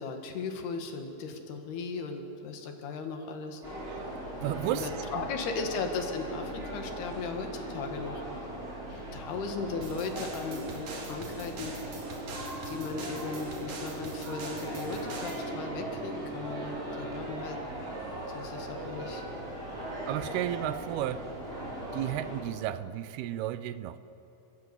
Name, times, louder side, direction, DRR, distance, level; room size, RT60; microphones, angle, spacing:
voice 1, 0.0-3.6 4.7-8.2 8.9-11.7 12.7-17.6 18.3-19.2, left 4 dB, 80° left, 4 dB, 3.9 m, -37 dB
sound 1, 3.6-22.4, right 1 dB, 15° right, 6.1 m, -39 dB
voice 2, 4.4-5.3 20.1-21.3 21.9-24.0, right 12 dB, 85° right, 14 dB, 2.7 m, -33 dB
sound 2, 9.8-17.1, right 2 dB, 35° right, 3.6 m, -44 dB
sound 3, 9.8-15.4, right 4 dB, 55° right, 3.6 m, -45 dB
30.0 x 15.0 x 8.0 m, 3.0 s
omnidirectional pair, 4.5 m